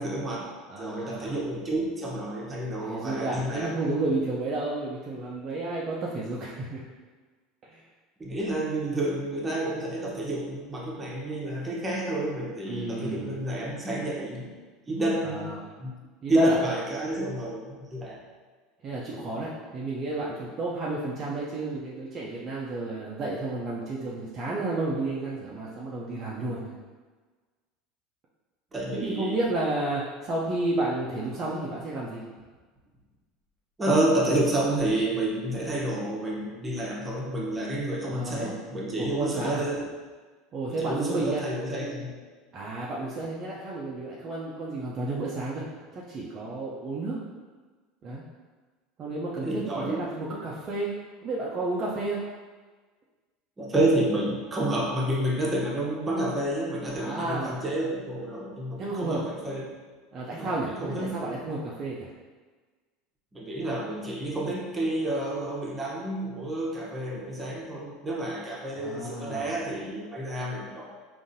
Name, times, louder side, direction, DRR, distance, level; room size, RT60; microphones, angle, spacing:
voice 1, 0.0-0.5 0.8-3.7 8.2-14.5 14.9-15.5 15.8-15.9 16.3-18.2 28.7-29.4 33.8-39.9 40.7-42.1 49.4-50.0 53.6-59.7 60.4-61.2 63.3-70.9, right 1 dB, 20° right, -4 dB, 0.9 m, -29 dB
voice 2, 0.7-1.4 2.8-6.8 7.6-7.8 12.7-13.4 15.2-15.6 16.2-16.6 18.8-26.8 29.0-32.2 38.1-38.5 39.0-39.6 40.5-41.5 42.5-45.7 45.9-47.2 48.0-48.2 49.0-51.0 51.2-52.2 57.0-57.6 58.8-59.2 60.1-62.1 68.8-69.6, right 2 dB, 40° right, -5 dB, 0.5 m, -31 dB
3.7 x 2.6 x 2.6 m, 1.4 s
hypercardioid pair, 95°, 0 cm